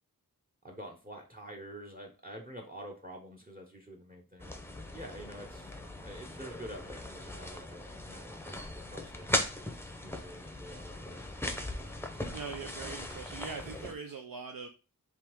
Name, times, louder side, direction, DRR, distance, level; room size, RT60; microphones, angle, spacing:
voice 1, 0.6-5.7 6.0-9.4 10.0-11.2, equal, 25° right, 2 dB, 0.8 m, -48 dB
sound 1, 4.4-13.9, left 1 dB, 5° left, 0.6 m, -39 dB
voice 2, 12.3-14.7, right 5 dB, 75° right, 6 dB, 0.5 m, -42 dB
3.6 x 2.9 x 4.5 m, 0.33 s
wide cardioid pair, 45°, 35 cm